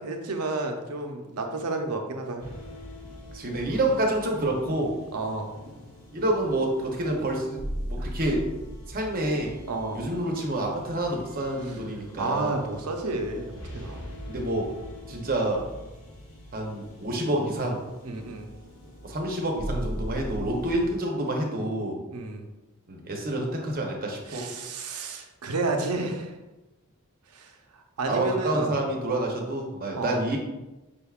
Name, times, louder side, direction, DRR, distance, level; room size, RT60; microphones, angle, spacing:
voice 1, 0.0-2.5 3.8-4.0 5.1-5.5 8.0-8.1 9.7-10.0 11.0-11.1 11.6-11.8 12.2-14.1 18.0-18.5 22.1-22.5 24.3-26.3 27.3-28.7 29.9-30.2, right 3 dB, 85° right, 4 dB, 0.6 m, -31 dB
sound 1, 2.4-21.0, equal, 80° left, 1.2 m, -40 dB
voice 2, 3.3-4.9 6.1-8.4 8.9-9.5 9.9-12.6 14.3-14.7 15.1-15.6 16.5-17.8 19.0-22.0 22.9-24.5 28.1-30.4, right 1 dB, 40° right, 1 dB, 0.7 m, -28 dB
5.1 x 3.4 x 2.4 m, 1.1 s
head